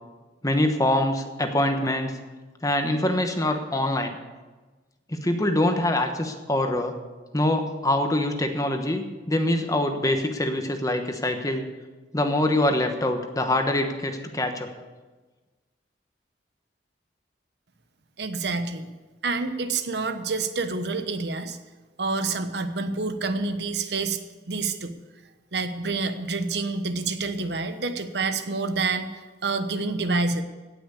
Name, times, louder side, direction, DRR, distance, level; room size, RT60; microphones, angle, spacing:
voice 1, 0.4-2.1 2.6-4.2 5.1-6.9 7.3-11.7 12.1-14.7, left 1 dB, 20° left, 6 dB, 1.1 m, -24 dB
voice 2, 18.2-18.9 19.2-21.6 22.0-24.2 24.5-24.9 25.5-30.4, right 3 dB, 65° right, 9 dB, 1.0 m, -28 dB
17.0 x 6.1 x 8.3 m, 1.3 s
head